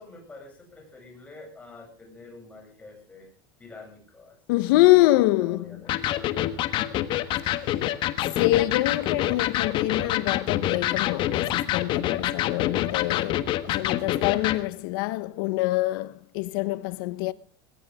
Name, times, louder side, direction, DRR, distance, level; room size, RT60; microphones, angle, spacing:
voice 1, 0.0-3.3 3.6-4.7 5.0-6.6, left 3 dB, 10° left, 8.0 m, -47 dB
voice 2, 4.5-5.8 7.4-7.9 8.4-17.3, left 18 dB, 70° left, 1.1 m, -25 dB
Electric guitar, 5.9-14.6, left 13 dB, 45° left, 1.4 m, -26 dB
20.5 x 17.5 x 3.7 m
supercardioid pair, 140°, 12 cm